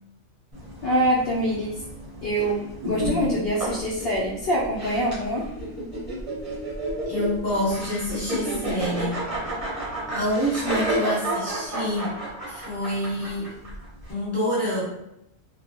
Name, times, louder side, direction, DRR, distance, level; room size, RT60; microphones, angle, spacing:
sound 1, 0.5-14.1, right 1 dB, 35° right, 0.7 m, -31 dB
voice 1, 0.8-1.8 2.2-5.4, equal, 65° left, -4 dB, 0.6 m, -25 dB
voice 2, 7.1-9.3 10.1-12.1 12.5-13.5 14.1-14.8, equal, 15° left, -9 dB, 0.8 m, -27 dB
2.2 x 2.1 x 2.7 m, 0.81 s
omnidirectional pair, 1.4 m